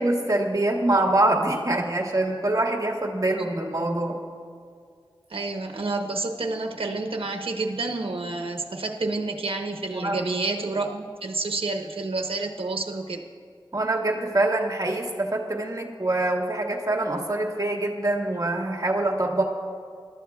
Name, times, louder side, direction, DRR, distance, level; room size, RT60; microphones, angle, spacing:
voice 1, 0.0-4.2 9.9-10.2 13.7-19.4, right 2 dB, 40° right, 0 dB, 1.7 m, -24 dB
voice 2, 5.3-13.2, right 3 dB, 80° right, 3 dB, 0.9 m, -29 dB
22.0 x 12.5 x 2.3 m, 2.1 s
wide cardioid pair, 45°, 9 cm